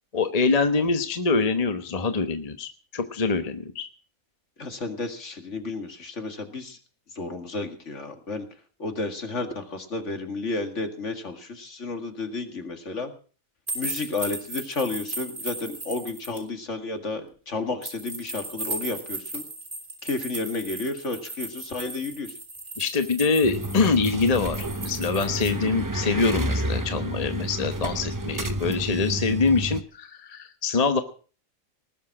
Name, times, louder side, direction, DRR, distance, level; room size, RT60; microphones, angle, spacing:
voice 1, 0.1-3.9 22.8-31.0, left 4 dB, 30° left, 8 dB, 1.1 m, -24 dB
voice 2, 4.6-6.8 7.2-8.4 8.8-13.1 13.7-19.4 20.0-22.3, left 3 dB, 55° left, 6 dB, 2.3 m, -32 dB
sound 1, 13.7-16.4 17.8-25.5, right 2 dB, 35° right, 3.8 m, -36 dB
sound 2, 23.4-29.8, right 1 dB, 20° right, 0.6 m, -30 dB
19.5 x 7.4 x 7.3 m, 0.40 s
omnidirectional pair, 1.5 m